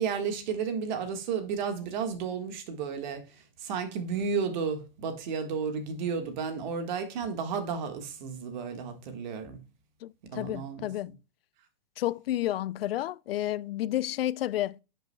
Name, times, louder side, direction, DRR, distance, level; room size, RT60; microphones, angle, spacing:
voice 1, 0.0-9.6 10.2-10.9, right 6 dB, 50° right, 1.6 m, -33 dB
voice 2, 10.0-11.2 12.0-14.8, left 14 dB, 80° left, 0.4 m, -31 dB
10.0 x 5.8 x 2.2 m
hypercardioid pair, 155°, 29 cm